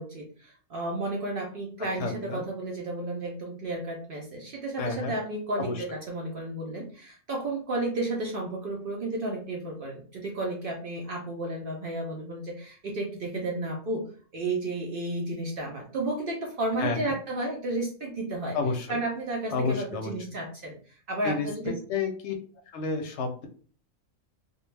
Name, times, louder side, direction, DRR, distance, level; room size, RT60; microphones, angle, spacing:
voice 1, 0.0-18.6 18.9-21.8, right 2 dB, 60° right, 0 dB, 0.6 m, -32 dB
voice 2, 2.0-2.4 4.8-5.1 5.6-5.8 16.8-17.1 18.5-19.0 19.5-20.1 21.2-21.5 21.9-22.3 22.7-23.5, left 4 dB, 65° left, 4 dB, 0.8 m, -30 dB
2.2 x 2.1 x 3.1 m, 0.42 s
omnidirectional pair, 1.3 m